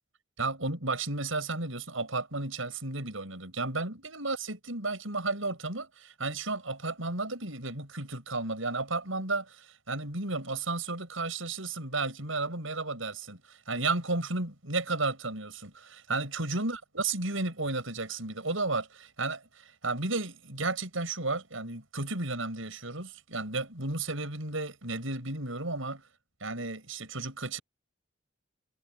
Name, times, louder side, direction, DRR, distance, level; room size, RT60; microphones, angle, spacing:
voice 1, 0.4-9.6 9.9-13.4 13.7-19.4 19.8-26.0 26.4-27.6, right 3 dB, 90° right, 6.5 m, -33 dB
head